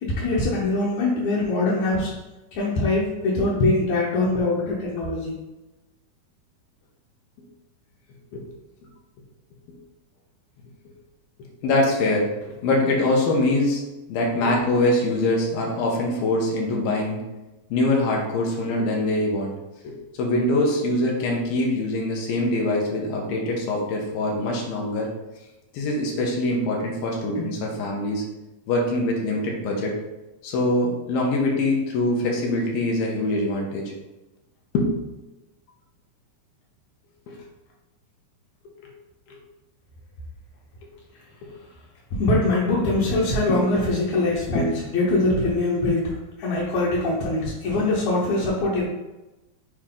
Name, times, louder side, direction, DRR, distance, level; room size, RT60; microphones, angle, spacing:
voice 1, 0.0-2.2 2.5-5.3 42.1-48.8, left 2 dB, 65° left, -6 dB, 2.0 m, -23 dB
voice 2, 11.6-13.8 14.1-17.2 17.7-19.5 19.8-25.1 25.7-28.2 28.7-30.0 30.4-33.9 34.7-35.1 37.3-37.4 38.8-38.9 44.5-44.8, left 2 dB, 85° left, -1 dB, 2.8 m, -23 dB
6.8 x 4.4 x 3.8 m, 1.0 s
omnidirectional pair, 4.2 m